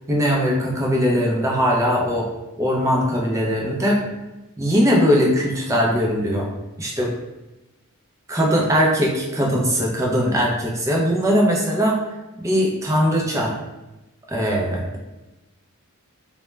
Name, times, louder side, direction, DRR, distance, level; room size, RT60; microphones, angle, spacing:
voice 1, 0.1-2.3 2.6-4.0 4.6-6.5 6.8-7.1 8.3-12.0 12.4-13.5 14.3-14.9, equal, 15° right, -2 dB, 0.3 m, -20 dB
2.1 x 2.1 x 3.0 m, 1.0 s
head